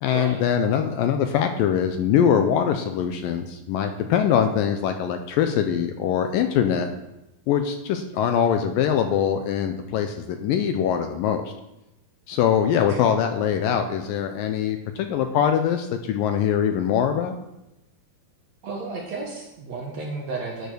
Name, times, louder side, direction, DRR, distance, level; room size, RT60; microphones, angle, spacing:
voice 1, 0.0-6.9 7.5-11.5 12.3-17.3, left 8 dB, 80° left, 6 dB, 2.1 m, -23 dB
voice 2, 12.8-13.1 18.6-20.7, right 3 dB, 60° right, -1 dB, 2.1 m, -33 dB
11.0 x 5.3 x 6.2 m, 0.92 s
omnidirectional pair, 4.5 m